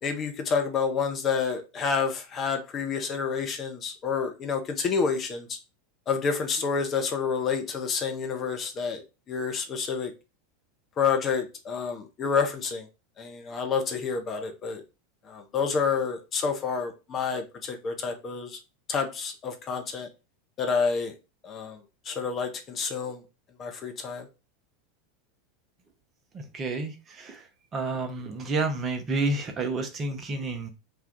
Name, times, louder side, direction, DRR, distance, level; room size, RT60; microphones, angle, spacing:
voice 1, 0.0-5.6 6.1-9.0 9.3-10.1 11.0-12.9 13.2-14.8 15.2-18.6 18.9-20.1 20.6-21.1 21.4-21.8 22.0-23.2 23.6-24.3, left 5 dB, 30° left, 5 dB, 0.6 m, -29 dB
voice 2, 26.3-27.4 27.7-30.7, right 3 dB, 30° right, 5 dB, 0.7 m, -30 dB
2.6 x 2.3 x 3.5 m, 0.29 s
figure-of-eight pair, 85°, 0 cm